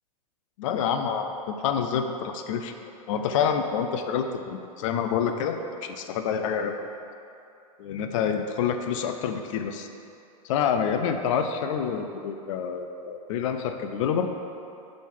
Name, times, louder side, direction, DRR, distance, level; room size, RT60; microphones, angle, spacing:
voice 1, 0.6-2.7 3.1-6.8 7.8-9.9 10.4-14.3, left 7 dB, 55° left, 6 dB, 0.5 m, -27 dB
6.3 x 3.6 x 4.6 m, 2.7 s
hypercardioid pair, 125°, 19 cm